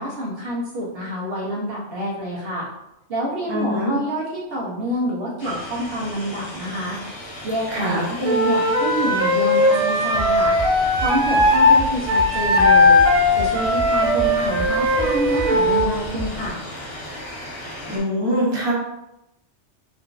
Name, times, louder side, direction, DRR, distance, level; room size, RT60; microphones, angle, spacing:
voice 1, 0.0-2.7 3.1-7.0 7.4-10.6 11.0-13.0 13.4-16.6, equal, 55° right, -5 dB, 0.9 m, -27 dB
voice 2, 3.5-3.9 5.4-5.5 7.7-8.0 17.9-18.7, equal, 25° right, -4 dB, 0.7 m, -23 dB
sound 1, 5.4-18.0, equal, 80° left, 1.2 m, -36 dB
Wind instrument woodwind instrument, 8.2-11.8 12.1-15.9, left 2 dB, 80° right, 1.0 m, -18 dB
sound 2, 10.1-16.5, right 3 dB, 60° left, 0.8 m, -33 dB
3.8 x 2.4 x 2.3 m, 0.88 s
omnidirectional pair, 1.2 m